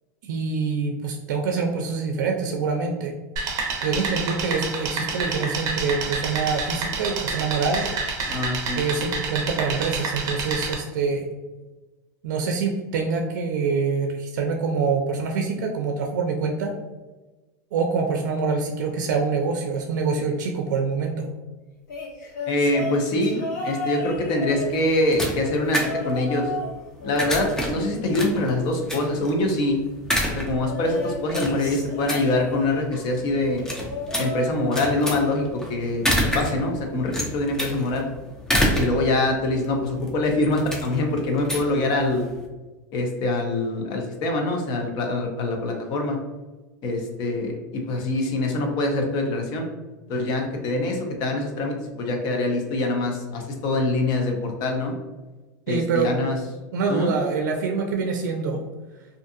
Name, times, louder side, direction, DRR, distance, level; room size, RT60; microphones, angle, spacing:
voice 1, 0.2-3.1 3.8-7.9 8.8-11.3 12.2-16.7 17.7-21.3 55.7-56.1 56.7-58.6, right 4 dB, 90° right, 2 dB, 0.4 m, -25 dB
sound 1, 3.4-10.7, right 4 dB, 40° right, 0.6 m, -28 dB
voice 2, 8.3-8.8 22.5-26.5 27.0-29.8 30.4-33.6 34.2-38.1 38.6-42.2 42.9-46.2 46.8-49.7 50.1-54.9 55.7-56.4 56.9-57.1, left 2 dB, 45° left, 3 dB, 0.6 m, -24 dB
sound 2, 21.9-25.2 25.7-26.7 27.0-28.6 30.6-32.8 33.7-35.2 35.5-35.9 37.0-37.1, left 1 dB, 90° left, 0.9 m, -34 dB
sound 3, 24.5-42.5, equal, 5° left, 0.4 m, -29 dB
2.5 x 2.4 x 2.6 m, 1.2 s
supercardioid pair, 135°, 10 cm